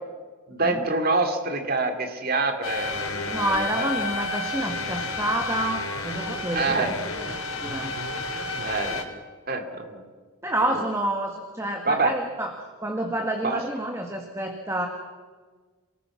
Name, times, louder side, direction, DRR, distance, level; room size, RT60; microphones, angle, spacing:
voice 1, 0.5-3.9 6.5-6.9 8.6-9.0 9.5-10.0 10.6-10.8 11.8-12.1 13.4-13.6, right 3 dB, 45° right, 6 dB, 2.6 m, -26 dB
sound 1, 2.6-9.0, left 3 dB, 75° left, 3.0 m, -31 dB
voice 2, 3.3-6.9 7.3-7.9 10.4-12.5 12.8-14.9, right 1 dB, 10° right, 3 dB, 1.6 m, -28 dB
28.0 x 19.0 x 6.2 m, 1.4 s
head